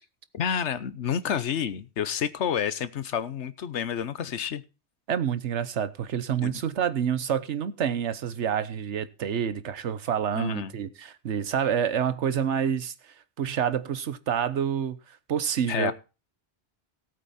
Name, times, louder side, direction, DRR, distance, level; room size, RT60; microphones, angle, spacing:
voice 1, 0.3-4.6 6.4-6.6 10.3-10.7 15.7-15.9, left 8 dB, 85° left, 1.2 m, -29 dB
voice 2, 5.1-12.9 13.4-15.0 15.3-15.9, right 8 dB, 85° right, 1.2 m, -28 dB
18.0 x 8.2 x 4.2 m
omnidirectional pair, 1.1 m